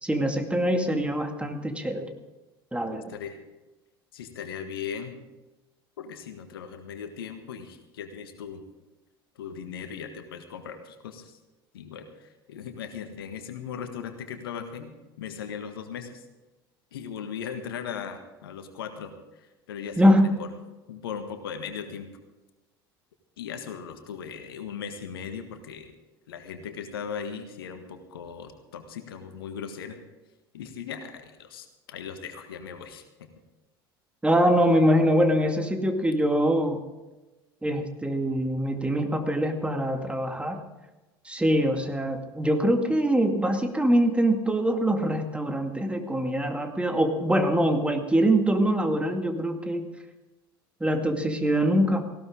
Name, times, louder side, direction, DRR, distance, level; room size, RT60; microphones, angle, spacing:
voice 1, 0.0-2.1 2.7-3.1 20.0-20.4 34.2-36.8 37.6-40.6 41.3-49.9 50.8-52.0, equal, 10° right, 5 dB, 2.2 m, -23 dB
voice 2, 2.9-3.4 4.1-5.2 6.0-8.6 9.4-11.4 11.7-14.9 15.2-16.2 16.9-20.1 20.4-20.5 20.9-22.1 23.4-26.0 26.3-30.0 30.5-33.3, left 7 dB, 75° left, 7 dB, 1.6 m, -38 dB
18.0 x 17.0 x 3.8 m, 1.1 s
figure-of-eight pair, 70°, 12 cm